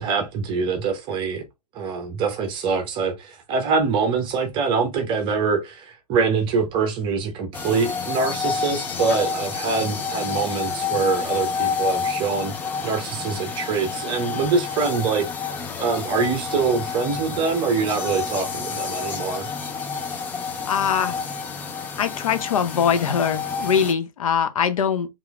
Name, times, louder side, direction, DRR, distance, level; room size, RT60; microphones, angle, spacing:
voice 1, 0.0-1.4 1.7-12.5 12.8-15.3 15.8-19.5, right 5 dB, 25° right, 0.8 m, -24 dB
sound 1, 7.5-23.9, left 5 dB, 10° left, 0.3 m, -29 dB
voice 2, 20.7-21.2 22.0-25.1, left 7 dB, 55° left, 0.7 m, -22 dB
4.6 x 3.0 x 2.4 m
figure-of-eight pair, 115°, 21 cm